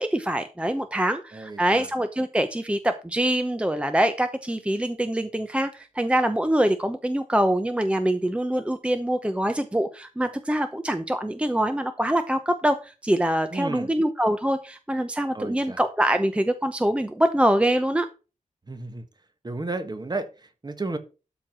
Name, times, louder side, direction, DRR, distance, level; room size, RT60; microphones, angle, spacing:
voice 1, 0.0-18.1, right 1 dB, 10° right, 0.8 m, -24 dB
voice 2, 1.3-1.9 13.5-13.9 15.3-15.8 18.7-19.0 19.4-21.0, right 2 dB, 30° right, 1.4 m, -33 dB
12.5 x 4.6 x 6.0 m
wide cardioid pair, 115°, 14 cm